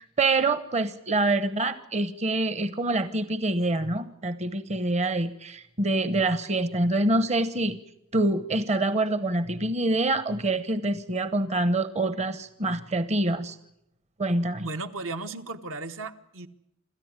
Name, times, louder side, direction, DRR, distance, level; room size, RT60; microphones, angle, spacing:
voice 1, 0.0-7.8 8.1-13.6 14.2-14.7, right 2 dB, 30° right, 13 dB, 1.0 m, -26 dB
voice 2, 14.6-16.5, right 3 dB, 65° right, 7 dB, 1.3 m, -35 dB
27.0 x 13.5 x 9.6 m, 0.81 s
head